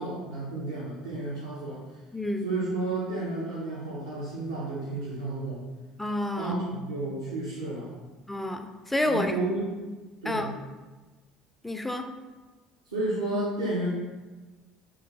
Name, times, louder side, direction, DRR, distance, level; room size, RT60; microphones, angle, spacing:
voice 1, 0.0-1.8 2.4-5.6 6.4-7.9 9.0-9.7 10.2-10.5 12.9-13.9, right 2 dB, 80° right, -8 dB, 0.6 m, -32 dB
voice 2, 2.1-2.5 6.0-6.5 8.3-9.4 10.2-10.5 11.6-12.1, left 1 dB, 5° left, 5 dB, 0.3 m, -29 dB
3.1 x 2.3 x 3.4 m, 1.3 s
figure-of-eight pair, 60°, 2 cm